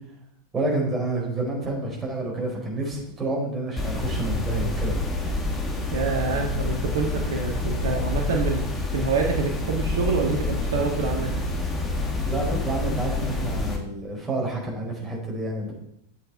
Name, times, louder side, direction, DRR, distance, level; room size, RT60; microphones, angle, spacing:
voice 1, 0.5-4.9 12.2-15.7, right 2 dB, 15° right, -3 dB, 4.4 m, -29 dB
sound 1, 3.8-13.8, left 2 dB, 20° left, 1.9 m, -27 dB
voice 2, 5.9-8.6 8.9-11.3, right 4 dB, 60° right, 1 dB, 1.5 m, -26 dB
11.0 x 7.9 x 4.4 m, 0.75 s
figure-of-eight pair, 90°, 0 cm